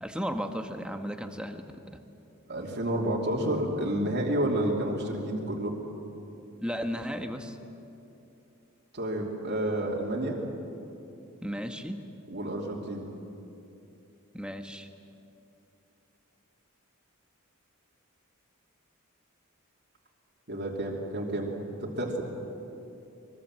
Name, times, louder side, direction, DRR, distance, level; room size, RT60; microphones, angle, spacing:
voice 1, 0.0-1.6 6.6-7.6 11.4-12.0 14.3-14.9, equal, 5° right, 6 dB, 1.3 m, -34 dB
voice 2, 2.5-5.8 8.9-10.4 12.3-13.0 20.5-21.5 21.8-22.2, right 1 dB, 50° right, -2 dB, 2.8 m, -30 dB
24.5 x 22.0 x 7.6 m, 2.8 s
head